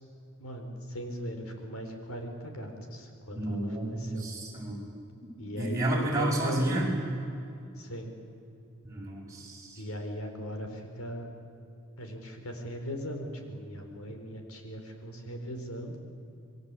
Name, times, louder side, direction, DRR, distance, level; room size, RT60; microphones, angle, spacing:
voice 1, 0.4-4.3 5.4-6.8 7.8-8.1 9.8-11.3 12.0-16.0, equal, 90° left, 5 dB, 4.2 m, -39 dB
voice 2, 3.3-4.8 5.6-6.9 8.8-9.8, right 1 dB, 15° right, -3 dB, 6.5 m, -31 dB
27.0 x 22.0 x 8.4 m, 2.6 s
head